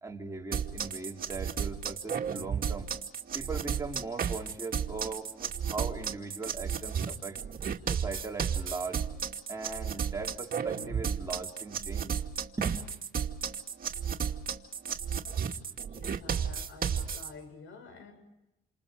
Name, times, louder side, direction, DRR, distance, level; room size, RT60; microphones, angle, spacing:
voice 1, 0.0-2.9 3.3-7.4 7.9-9.0 9.5-12.1 12.6-12.9 16.3-16.7, right 4 dB, 15° right, 0 dB, 3.6 m, -39 dB
sound 1, 0.5-17.3, right 7 dB, 45° right, 2.5 m, -33 dB
voice 2, 15.9-18.1, left 3 dB, 80° left, 7 dB, 7.5 m, -49 dB
29.0 x 27.0 x 5.1 m, 0.95 s
cardioid pair, 90°, 20 cm